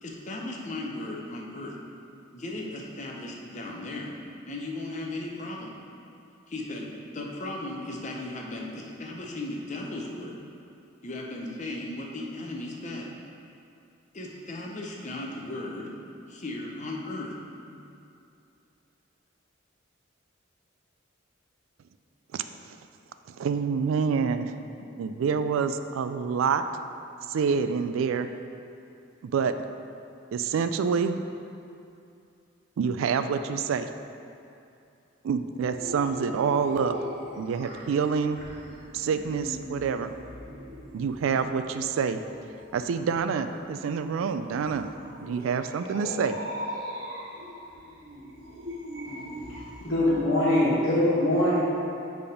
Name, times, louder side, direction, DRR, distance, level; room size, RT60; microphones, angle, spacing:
voice 1, 0.0-1.8 2.3-4.2 4.5-5.8 6.5-6.9 7.1-10.4 11.0-13.1 14.1-15.9 16.3-17.3 17.7-17.8, left 2 dB, 35° left, -1 dB, 0.7 m, -36 dB
voice 2, 22.3-22.8 23.4-24.5 25.0-26.6 27.3-28.3 29.2-29.6 30.3-31.2 32.8-33.9 35.2-36.9 37.4-38.4 38.9-40.1 40.9-42.2 42.7-44.9 45.2-46.4, right 6 dB, 80° right, 10 dB, 0.3 m, -27 dB
sound 1, 35.6-50.2, equal, 50° right, 1.2 m, -40 dB
voice 3, 49.8-51.6, left 1 dB, 75° left, -11 dB, 1.3 m, -23 dB
6.8 x 3.5 x 5.1 m, 2.7 s
head